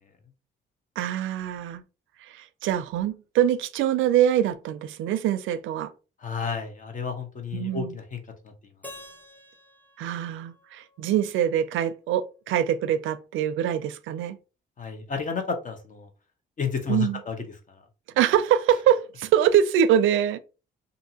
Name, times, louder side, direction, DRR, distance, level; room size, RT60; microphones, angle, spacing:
voice 1, 1.0-1.8 2.2-5.9 7.5-7.9 10.0-14.4 16.9-17.2 18.2-20.4, right 10 dB, 80° right, 0.4 m, -24 dB
voice 2, 6.2-8.2 14.8-16.1 16.6-17.4, left 6 dB, 40° left, 0.8 m, -31 dB
Keyboard (musical), 8.8-11.8, left 1 dB, 10° left, 0.6 m, -49 dB
2.6 x 2.6 x 2.8 m
cardioid pair, 90°, 20 cm